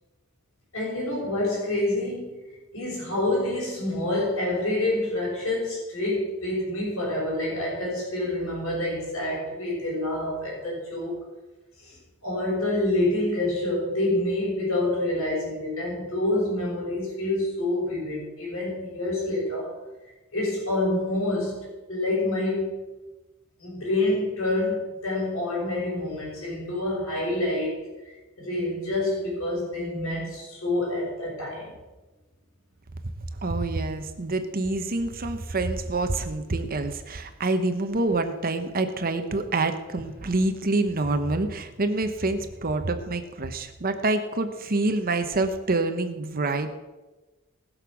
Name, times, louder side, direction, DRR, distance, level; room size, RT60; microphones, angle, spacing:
voice 1, 0.7-11.2 11.8-19.7 20.3-22.7 23.6-27.9 28.4-31.7, left 1 dB, 65° left, -8 dB, 5.8 m, -27 dB
voice 2, 33.4-46.7, right 2 dB, 45° right, 8 dB, 1.0 m, -27 dB
19.5 x 6.6 x 6.2 m, 1.2 s
head